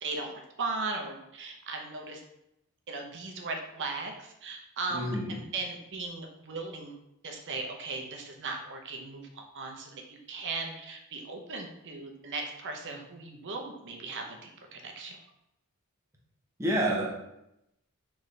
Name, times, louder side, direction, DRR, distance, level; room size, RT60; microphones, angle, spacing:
voice 1, 0.0-2.2 2.9-6.9 7.2-15.2, right 3 dB, 55° right, 2 dB, 0.7 m, -37 dB
voice 2, 4.9-5.4 16.6-17.1, right 1 dB, 15° right, -2 dB, 0.7 m, -28 dB
4.1 x 3.4 x 3.2 m, 0.85 s
head